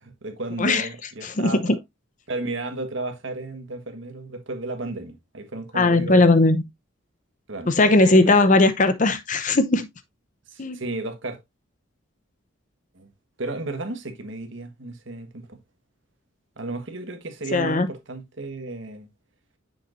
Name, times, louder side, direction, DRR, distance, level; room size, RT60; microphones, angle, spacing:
voice 1, 0.0-1.6 2.3-6.3 7.5-8.5 10.5-11.4 12.9-13.1 13.4-15.6 16.6-19.1, right 2 dB, 65° right, 1.4 m, -33 dB
voice 2, 0.6-0.9 1.2-1.8 5.7-6.6 7.7-9.9 10.6-10.8 17.5-17.9, left 2 dB, 40° left, 0.7 m, -18 dB
7.0 x 6.5 x 2.6 m
head